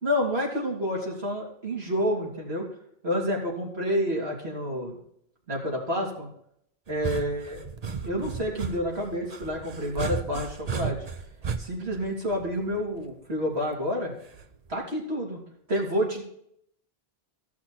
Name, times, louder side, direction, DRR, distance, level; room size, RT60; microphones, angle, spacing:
voice 1, 0.0-2.7 3.0-5.0 5.5-6.3 6.9-7.6 8.0-11.0 11.6-14.1 14.7-15.4 15.7-16.2, equal, 75° right, -2 dB, 3.6 m, -29 dB
sound 1, 6.9-13.0 14.3-14.7, right 6 dB, 40° right, 0.8 m, -34 dB
14.5 x 6.1 x 4.4 m, 0.70 s
omnidirectional pair, 1.1 m